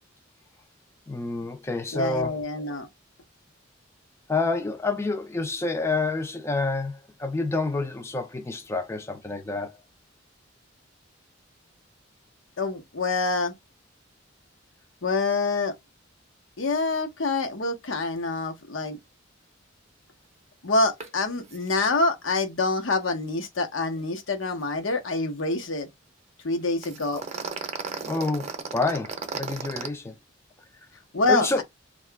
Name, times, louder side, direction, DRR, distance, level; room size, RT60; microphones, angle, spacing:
voice 1, 1.1-2.4 4.3-9.8 27.1-27.2 28.1-30.1 31.3-31.6, left 3 dB, 15° left, 0.4 m, -28 dB
voice 2, 1.9-2.9 12.6-13.5 15.0-15.7 16.6-19.0 20.6-25.9 26.4-27.2 31.1-31.6, left 3 dB, 80° left, 0.9 m, -26 dB
sound 1, 21.0-21.1 21.4-21.6 21.8-22.0 26.8-29.9, right 5 dB, 35° right, 0.7 m, -34 dB
2.8 x 2.3 x 3.4 m
head